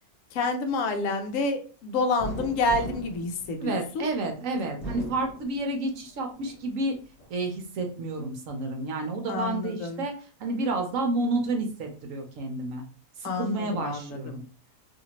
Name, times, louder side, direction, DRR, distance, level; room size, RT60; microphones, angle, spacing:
voice 1, 0.3-4.1 4.5-4.6 9.3-10.0 13.2-14.4, left 3 dB, 65° left, 5 dB, 0.9 m, -29 dB
sound 1, 2.2-4.1 4.6-6.0 6.4-7.3, equal, 45° left, 1.3 m, -39 dB
voice 2, 3.6-6.9 7.3-10.1 10.4-12.8 13.2-14.4, right 2 dB, 65° right, 3 dB, 1.0 m, -30 dB
2.8 x 2.6 x 2.9 m, 0.38 s
omnidirectional pair, 1.6 m